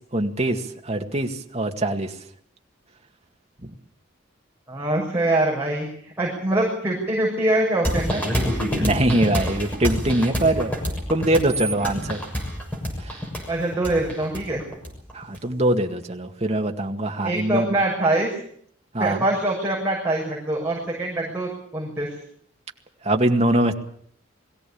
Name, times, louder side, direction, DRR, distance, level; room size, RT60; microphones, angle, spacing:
voice 1, 0.1-2.1 3.6-3.7 8.8-10.7 11.1-12.2 13.0-13.1 15.1-17.7 18.9-19.2 23.0-23.7, right 1 dB, 35° right, 4 dB, 2.1 m, -23 dB
voice 2, 4.7-8.2 13.5-14.6 17.2-18.4 19.0-22.1, right 1 dB, 10° right, -5 dB, 6.5 m, -24 dB
sound 1, 7.8-15.4, equal, 5° left, 6.8 m, -27 dB
22.0 x 16.5 x 8.7 m, 0.62 s
head